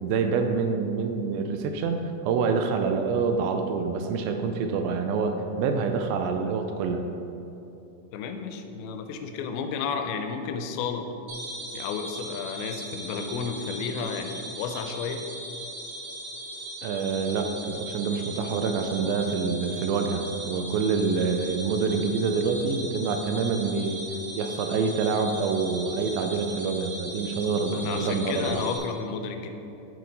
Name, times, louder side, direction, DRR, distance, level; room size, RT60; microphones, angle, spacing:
voice 1, 0.0-2.0 2.2-7.0 16.8-24.0 24.3-28.6, right 5 dB, 80° right, 5 dB, 2.2 m, -26 dB
voice 2, 8.1-11.1 11.7-15.3 27.7-29.5, left 5 dB, 85° left, 6 dB, 2.5 m, -32 dB
sound 1, 11.3-28.8, right 1 dB, 55° right, 1.8 m, -39 dB
7.5 x 6.4 x 3.9 m, 2.9 s
omnidirectional pair, 4.3 m